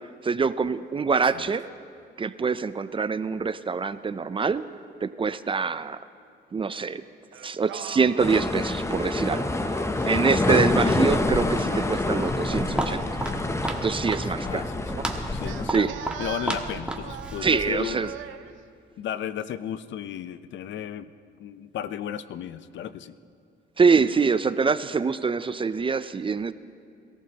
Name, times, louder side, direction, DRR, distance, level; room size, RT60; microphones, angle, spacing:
voice 1, 0.2-1.6 2.2-4.6 5.0-6.0 6.5-7.0 7.4-13.0 13.8-15.0 15.7-15.9 17.4-18.1 23.8-26.5, right 5 dB, 25° right, 13 dB, 0.5 m, -25 dB
Singing, 7.3-10.1 11.2-14.4 15.4-18.5, right 10 dB, 75° right, 0.7 m, -42 dB
sound 1, 8.2-15.7, left 2 dB, 15° left, 0.7 m, -26 dB
Walk footsteps, 11.8-17.9, right 1 dB, 5° right, 1.4 m, -34 dB
voice 2, 14.4-15.0 15.3-15.9 16.2-18.1 19.0-21.1 21.4-23.2, left 10 dB, 70° left, 14 dB, 0.6 m, -34 dB
23.0 x 14.5 x 2.9 m, 2.4 s
cardioid pair, 90°, 20 cm